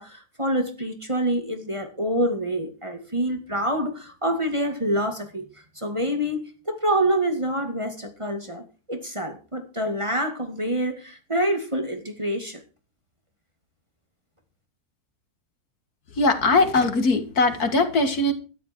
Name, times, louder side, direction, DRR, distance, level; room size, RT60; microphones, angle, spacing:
voice 1, 0.0-5.4 5.8-6.4 6.7-12.6, right 1 dB, 20° right, 5 dB, 2.2 m, -26 dB
voice 2, 16.2-18.3, left 2 dB, 70° left, 8 dB, 2.5 m, -20 dB
13.0 x 11.5 x 4.6 m, 0.34 s
omnidirectional pair, 1.7 m